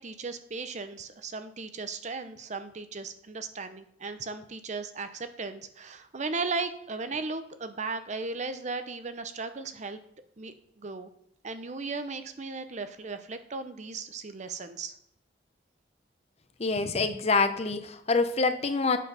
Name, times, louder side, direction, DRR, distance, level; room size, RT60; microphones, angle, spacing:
voice 1, 0.0-10.0 10.4-11.1 11.4-14.9 16.8-17.0, right 4 dB, 40° right, 10 dB, 0.7 m, -36 dB
voice 2, 16.6-19.0, left 4 dB, 35° left, 9 dB, 0.7 m, -26 dB
8.3 x 6.3 x 5.5 m, 0.72 s
head